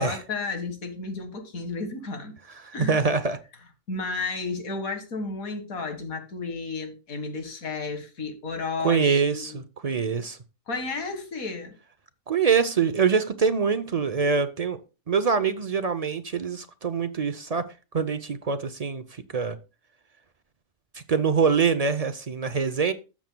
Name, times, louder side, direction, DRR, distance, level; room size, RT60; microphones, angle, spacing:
voice 1, 0.0-2.3 2.7-3.0 3.9-9.6 10.7-11.8, left 3 dB, 90° left, 2.1 m, -32 dB
voice 2, 2.6-3.4 8.8-10.4 12.3-14.8 15.1-17.7 17.9-19.6 21.1-22.9, right 5 dB, 45° right, 0.5 m, -24 dB
13.5 x 7.1 x 2.2 m
omnidirectional pair, 1.4 m